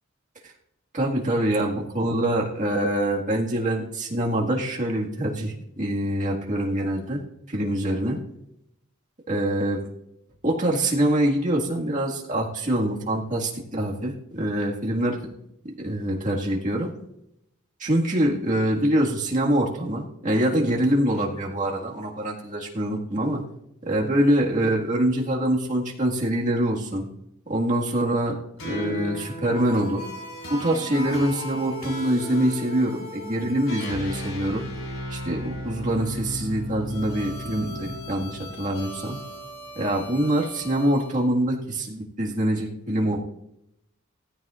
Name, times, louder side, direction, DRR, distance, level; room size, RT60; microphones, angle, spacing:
voice 1, 0.9-7.2 7.5-8.2 9.3-9.8 10.4-15.2 15.8-16.9 17.8-23.4 23.9-27.1 27.5-28.4 28.6-30.0 30.5-34.6 35.1-39.2 39.8-43.2, right 1 dB, 35° right, -2 dB, 1.9 m, -24 dB
sound 1, 28.6-41.1, left 1 dB, 85° left, 5.6 m, -35 dB
17.0 x 14.5 x 2.5 m, 0.82 s
head